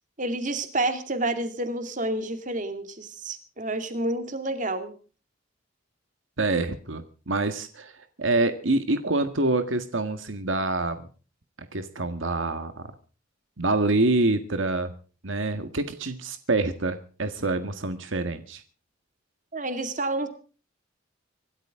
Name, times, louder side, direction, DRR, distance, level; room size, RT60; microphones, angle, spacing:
voice 1, 0.2-4.9 19.5-20.3, right 2 dB, 40° right, 8 dB, 2.5 m, -29 dB
voice 2, 6.4-7.9 8.2-11.0 11.7-12.9 13.6-14.9 15.2-18.6, right 2 dB, 80° right, 9 dB, 1.7 m, -26 dB
25.5 x 13.5 x 3.7 m, 0.37 s
head